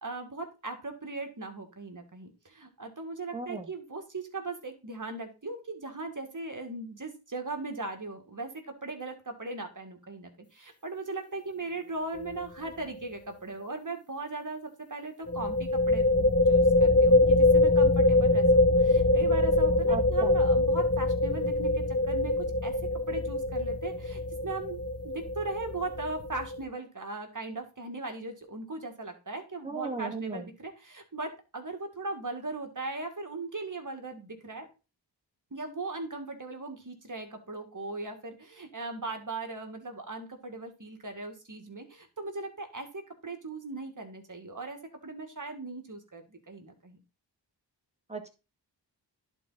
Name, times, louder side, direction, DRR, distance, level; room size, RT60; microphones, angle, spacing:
voice 1, 0.0-22.7 23.1-34.7 35.5-47.0, right 3 dB, 45° right, 4 dB, 1.9 m, -39 dB
voice 2, 3.3-3.7 19.9-20.4 29.6-30.5 48.1-48.3, right 4 dB, 15° right, 2 dB, 1.8 m, -36 dB
sound 1, 12.2-12.4 12.7-12.8 15.3-26.6, left 2 dB, 35° left, 1.1 m, -24 dB
11.0 x 4.2 x 4.1 m, 0.31 s
wide cardioid pair, 50°, 44 cm